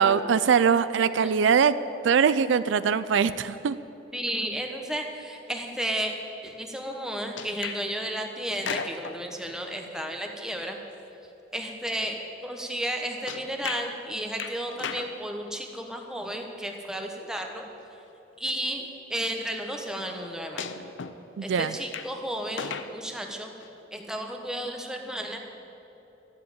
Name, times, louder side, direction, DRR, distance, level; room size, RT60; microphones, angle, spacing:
voice 1, 0.0-1.8 2.0-3.8 21.4-21.7, right 6 dB, 80° right, 14 dB, 0.4 m, -22 dB
voice 2, 4.1-6.1 6.4-10.8 11.5-17.7 18.4-20.7 21.4-23.5 23.9-25.4, right 1 dB, 5° right, 2 dB, 1.1 m, -33 dB
sound 1, 7.4-7.8 8.5-9.2 13.3-13.9 14.4-15.1 17.0-17.1 18.3-18.4 20.6-21.2 21.7-22.1 22.5-22.9 23.6-23.7, left 6 dB, 85° left, 0.6 m, -35 dB
12.5 x 7.6 x 9.0 m, 3.0 s
head